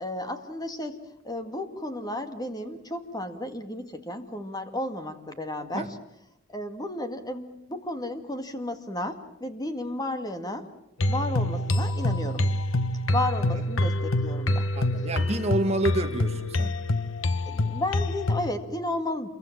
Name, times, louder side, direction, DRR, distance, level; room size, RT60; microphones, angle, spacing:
voice 1, 0.0-5.9 6.5-10.7 11.1-12.5 13.1-14.7 17.5-19.3, left 1 dB, 20° left, 2.0 m, -33 dB
sound 1, 11.0-18.5, left 1 dB, 65° left, 1.0 m, -26 dB
voice 2, 14.8-16.7, right 2 dB, 30° right, 1.8 m, -28 dB
28.0 x 23.0 x 7.4 m
head